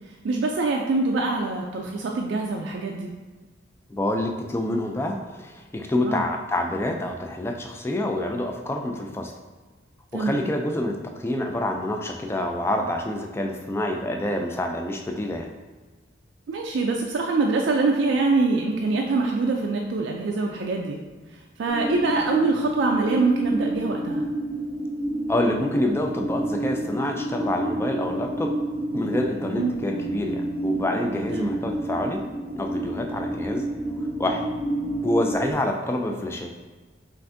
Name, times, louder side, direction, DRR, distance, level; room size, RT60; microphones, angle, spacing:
voice 1, 0.2-3.1 6.0-6.2 10.1-10.4 16.5-21.0 21.3-24.2 29.6-29.7 31.3-31.6, right 3 dB, 70° right, 0 dB, 0.4 m, -24 dB
voice 2, 3.9-9.3 10.1-15.5 25.3-28.6 28.9-32.2 32.6-33.6 34.2-34.4 35.0-36.5, left 1 dB, 15° left, 2 dB, 0.3 m, -27 dB
sound 1, 21.7-35.5, right 1 dB, 30° right, 0.7 m, -29 dB
5.6 x 2.6 x 2.5 m, 1.3 s
head